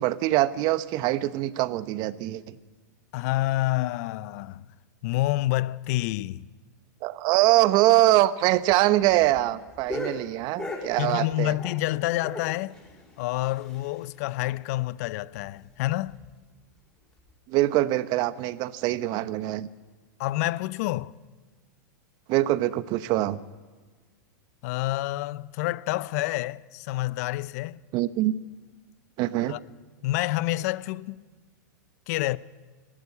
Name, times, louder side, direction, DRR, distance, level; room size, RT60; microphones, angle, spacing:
voice 1, 0.0-2.6 7.0-11.5 17.5-19.7 22.3-23.4 27.9-28.3 29.2-29.6, right 16 dB, 45° right, 0.9 m, -23 dB
voice 2, 3.1-4.6 5.0-6.5 11.0-12.8 13.2-16.2 20.2-21.1 24.6-27.8 29.5-29.6 30.0-31.2 32.1-32.4, left 17 dB, 55° left, 0.6 m, -28 dB
sound 1, 8.5-11.9 12.2-14.2 14.5-14.6 14.9-15.0 15.4-15.5 16.1-16.3 17.2-17.3, left 2 dB, 10° left, 6.0 m, -38 dB
20.0 x 15.0 x 9.7 m
hypercardioid pair, 115°, 10 cm